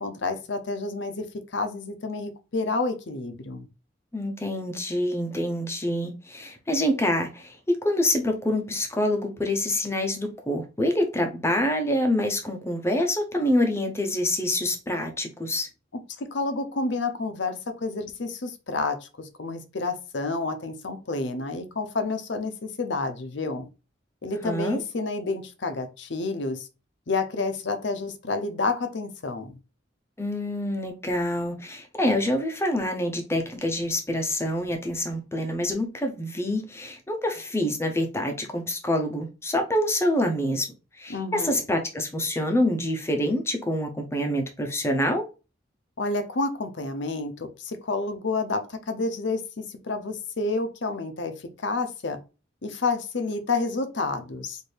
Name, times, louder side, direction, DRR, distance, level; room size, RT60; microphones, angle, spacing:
voice 1, 0.0-3.7 16.2-23.7 24.2-26.7 27.1-29.5 41.1-41.6 46.0-52.2 52.6-54.6, left 3 dB, 65° left, 0.7 m, -29 dB
voice 2, 4.1-15.7 24.4-24.8 30.2-40.7 40.9-45.3, left 1 dB, 15° left, 0.6 m, -26 dB
4.3 x 2.6 x 3.3 m
head